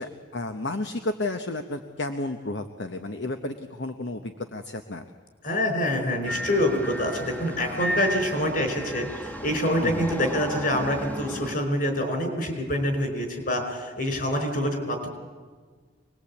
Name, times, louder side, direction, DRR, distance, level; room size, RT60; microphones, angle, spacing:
voice 1, 0.0-5.0 9.8-10.0, left 2 dB, 65° left, 7 dB, 1.0 m, -32 dB
voice 2, 5.4-15.1, left 1 dB, 45° left, 5 dB, 4.8 m, -26 dB
sound 1, 6.3-11.6, equal, 10° left, 1.2 m, -34 dB
25.0 x 20.5 x 8.5 m, 1.5 s
head